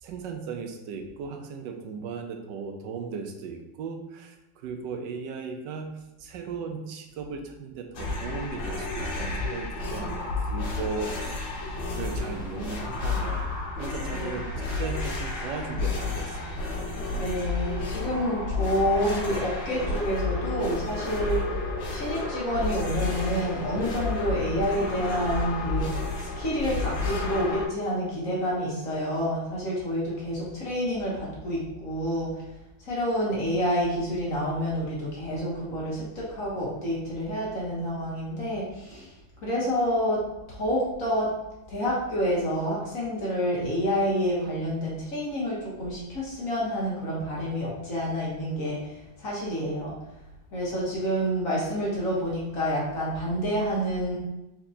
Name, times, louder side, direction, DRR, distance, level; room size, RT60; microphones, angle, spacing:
voice 1, 0.0-11.5 12.0-13.5 13.8-16.8, right 5 dB, 75° right, 5 dB, 1.2 m, -37 dB
sound 1, 8.0-27.7, left 3 dB, 85° left, 1.7 m, -31 dB
voice 2, 17.1-21.4 21.9-25.9 26.2-32.4 32.8-39.1 39.4-40.2 40.5-41.3 41.7-50.0 50.5-54.2, equal, 50° left, -5 dB, 1.3 m, -28 dB
4.3 x 4.2 x 2.7 m, 0.94 s
omnidirectional pair, 2.1 m